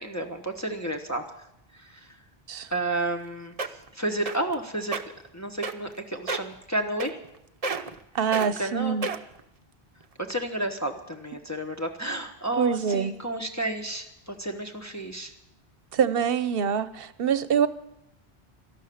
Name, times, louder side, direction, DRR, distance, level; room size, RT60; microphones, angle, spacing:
voice 1, 0.0-1.5 1.7-2.2 2.7-5.0 5.3-7.2 8.6-9.0 10.2-15.3, right 1 dB, 15° left, 2 dB, 1.2 m, -31 dB
sound 1, 3.2-3.3 3.6-3.9 4.3-4.5 4.8-5.0 5.6-6.0 6.3-6.5 7.0-7.4 7.6-8.0 8.3-8.5 9.0-9.4 10.0-10.1, right 4 dB, 40° right, 0.8 m, -30 dB
voice 2, 8.1-9.1 12.6-13.1 15.9-17.7, right 7 dB, 65° right, 14 dB, 1.0 m, -25 dB
13.0 x 12.0 x 8.5 m, 0.84 s
omnidirectional pair, 1.0 m